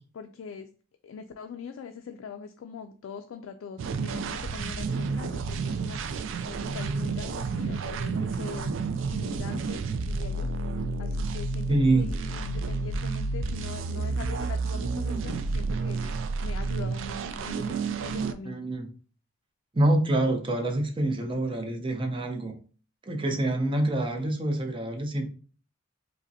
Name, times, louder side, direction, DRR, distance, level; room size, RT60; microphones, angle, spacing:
voice 1, 0.1-0.7 1.0-6.0 6.4-8.7 9.1-10.5 11.0-16.1 16.4-18.7, left 5 dB, 85° left, 5 dB, 0.3 m, -42 dB
sound 1, 3.8-18.3, right 4 dB, 70° right, 0.3 m, -30 dB
voice 2, 11.7-12.1 18.4-18.9 19.7-22.6 23.0-25.3, right 1 dB, 25° right, 3 dB, 0.6 m, -26 dB
4.8 x 2.1 x 2.7 m, 0.40 s
head